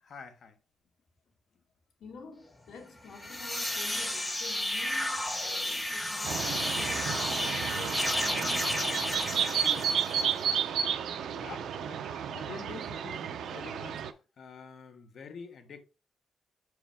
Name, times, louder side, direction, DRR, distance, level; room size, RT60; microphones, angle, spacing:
voice 1, 0.0-0.5 11.1-14.0 14.4-15.8, left 5 dB, 55° left, 1.1 m, -47 dB
voice 2, 2.0-9.9, left 5 dB, 75° left, 2.1 m, -48 dB
sound 1, 3.1-10.5, left 1 dB, 10° left, 1.0 m, -32 dB
sound 2, 6.2-14.1, right 8 dB, 75° right, 0.6 m, -32 dB
6.8 x 4.7 x 3.5 m
wide cardioid pair, 150°, 0 cm